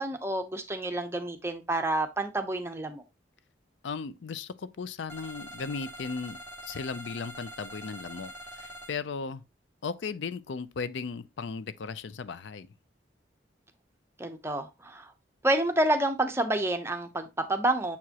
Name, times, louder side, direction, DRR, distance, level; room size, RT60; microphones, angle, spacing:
voice 1, 0.0-3.0 14.2-15.1 15.4-18.0, right 1 dB, 15° right, 0.7 m, -29 dB
voice 2, 3.8-9.4 9.8-12.7, left 5 dB, 75° left, 0.4 m, -36 dB
sound 1, 5.1-8.9, equal, 15° left, 1.5 m, -44 dB
7.0 x 4.7 x 2.9 m
head